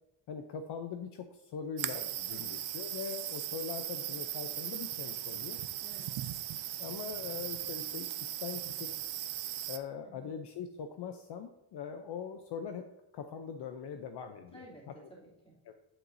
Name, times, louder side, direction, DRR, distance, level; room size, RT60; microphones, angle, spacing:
voice 1, 0.3-5.6 6.8-8.9 9.7-12.9 13.1-14.9 15.6-15.7, left 7 dB, 60° left, 6 dB, 0.7 m, -42 dB
sound 1, 1.8-9.8, right 13 dB, 75° right, 0.7 m, -38 dB
voice 2, 2.3-2.7 5.8-6.2 10.0-10.3 14.5-15.6, equal, 10° left, -6 dB, 2.9 m, -54 dB
9.0 x 8.0 x 2.7 m, 0.89 s
cardioid pair, 145°, 47 cm